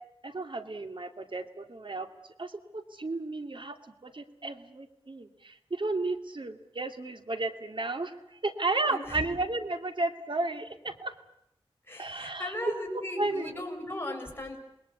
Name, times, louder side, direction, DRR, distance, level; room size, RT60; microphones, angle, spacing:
voice 1, 0.2-2.1 2.4-3.8 4.0-11.1 12.0-13.5, right 2 dB, 55° right, 7 dB, 2.4 m, -33 dB
voice 2, 11.9-14.6, left 1 dB, 20° left, 1 dB, 6.9 m, -37 dB
28.0 x 20.5 x 8.4 m, 0.83 s
wide cardioid pair, 70°, 10 cm